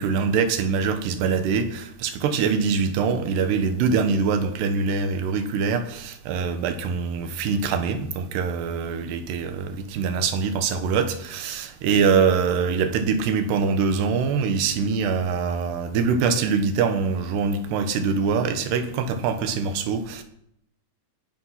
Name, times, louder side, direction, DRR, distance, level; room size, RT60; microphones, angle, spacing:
voice 1, 0.0-20.2, right 5 dB, 90° right, 3.5 m, -24 dB
20.5 x 11.0 x 5.9 m
omnidirectional pair, 4.6 m